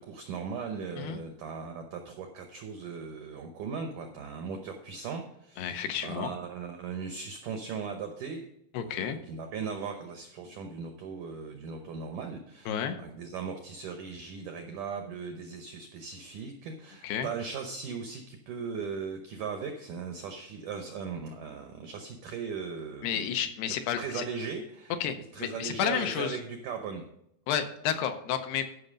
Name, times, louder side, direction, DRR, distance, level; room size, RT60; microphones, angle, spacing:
voice 1, 0.0-8.5 8.8-23.3 23.7-24.9 25.3-27.1, right 5 dB, 80° right, 5 dB, 1.8 m, -38 dB
voice 2, 5.6-6.3 8.7-9.2 12.7-13.0 17.0-17.3 23.0-24.3 25.0-26.4 27.5-28.7, left 9 dB, 80° left, 7 dB, 2.6 m, -31 dB
13.0 x 5.7 x 5.1 m, 0.76 s
omnidirectional pair, 4.8 m